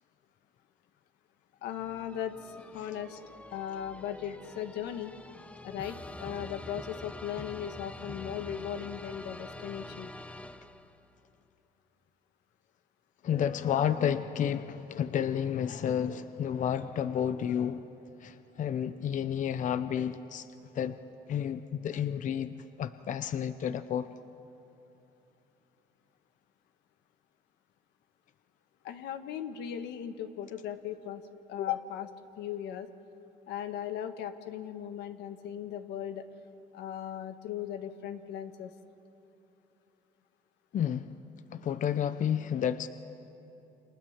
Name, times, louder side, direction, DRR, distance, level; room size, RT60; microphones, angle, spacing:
voice 1, 1.6-3.2 3.5-5.1 5.6-10.1 28.8-31.2 31.5-32.1 32.4-32.9 33.5-36.2 36.7-38.7, left 10 dB, 85° left, 8 dB, 1.5 m, -37 dB
sound 1, 1.6-11.1, left 1 dB, 5° left, 0.8 m, -46 dB
voice 2, 13.2-17.9 18.2-20.5 20.7-21.0 21.3-24.1 40.7-41.2 41.5-42.9, left 9 dB, 50° left, 12 dB, 0.8 m, -31 dB
30.0 x 26.0 x 7.3 m, 3.0 s
cardioid pair, 110°, 17 cm